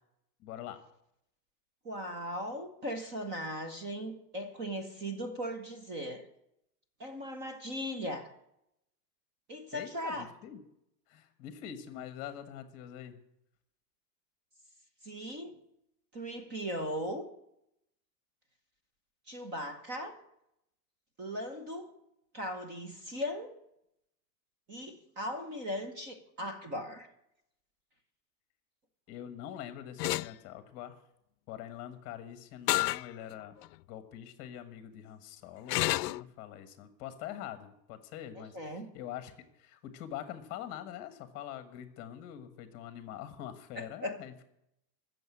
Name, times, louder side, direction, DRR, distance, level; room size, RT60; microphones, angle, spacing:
voice 1, 0.4-0.8 9.7-10.6 11.1-13.2 29.1-31.0 31.5-33.6 33.9-38.6 38.9-39.3 39.6-44.3, left 10 dB, 30° left, 10 dB, 1.4 m, -44 dB
voice 2, 1.8-6.2 7.0-8.3 9.5-10.3 15.0-15.5 16.1-17.2 19.3-20.1 21.2-21.9 22.3-23.5 24.7-27.1 38.4-38.9 43.7-44.2, equal, 20° right, 7 dB, 1.1 m, -38 dB
sound 1, 30.0-30.3 32.7-33.0 33.6-33.7 35.7-36.2, left 19 dB, 75° left, 0.6 m, -29 dB
14.5 x 7.1 x 9.6 m, 0.79 s
supercardioid pair, 170°, 48 cm